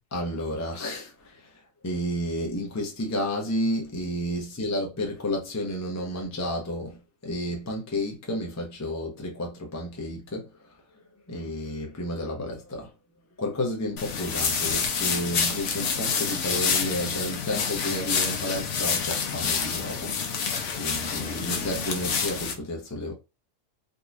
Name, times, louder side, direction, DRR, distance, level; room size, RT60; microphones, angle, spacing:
voice 1, 0.1-10.7 11.3-12.9 13.4-23.1, left 1 dB, 15° left, 0.6 m, -31 dB
sound 1, 14.0-22.5, left 6 dB, 60° left, 1.0 m, -28 dB
3.8 x 2.8 x 2.5 m
omnidirectional pair, 1.5 m